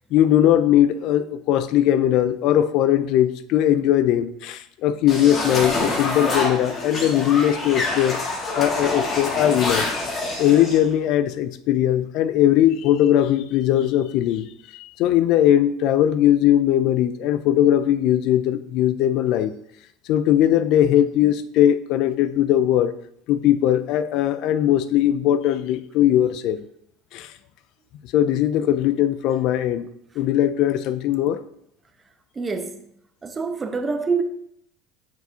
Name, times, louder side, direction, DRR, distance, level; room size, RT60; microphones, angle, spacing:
voice 1, 0.1-8.2 8.6-9.9 10.4-14.5 14.7-19.5 20.1-22.9 23.3-26.6 27.1-27.3 28.1-29.9 30.2-31.4, left 11 dB, 60° left, 0.4 m, -19 dB
sound 1, 5.1-10.8, left 2 dB, 40° left, 1.8 m, -26 dB
voice 2, 32.4-32.8 33.2-34.2, right 4 dB, 25° right, 0.7 m, -26 dB
7.7 x 4.7 x 2.8 m
supercardioid pair, 100°, 0 cm